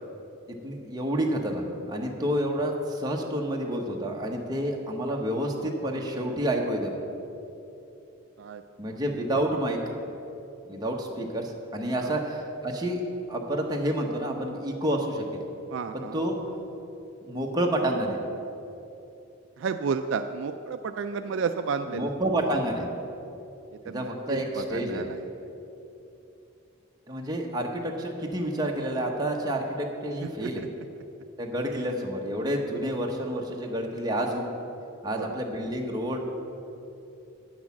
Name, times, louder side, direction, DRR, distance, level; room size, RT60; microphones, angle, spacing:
voice 1, 0.6-7.0 8.8-9.8 10.7-13.0 13.3-15.4 15.9-16.4 17.2-18.2 21.9-22.9 23.8-25.0 27.1-30.6 31.4-34.6 35.0-36.2, right 1 dB, 20° right, 0 dB, 0.9 m, -29 dB
voice 2, 8.4-9.0 12.0-12.2 15.7-16.2 19.6-22.1 23.7-25.3 30.4-30.7 35.2-35.4, right 5 dB, 60° right, 8 dB, 0.3 m, -32 dB
9.4 x 6.3 x 7.1 m, 2.9 s
head